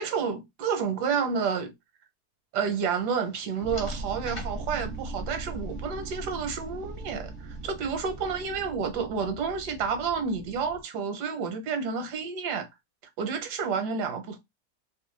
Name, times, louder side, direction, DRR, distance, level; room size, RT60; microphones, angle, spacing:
voice 1, 0.0-1.7 2.5-12.7 13.2-14.4, right 6 dB, 80° right, 1.3 m, -30 dB
sound 1, 2.6-8.4, left 2 dB, 35° left, 0.5 m, -50 dB
sound 2, 3.6-10.8, right 2 dB, 65° right, 0.7 m, -39 dB
3.0 x 2.1 x 3.1 m
omnidirectional pair, 1.7 m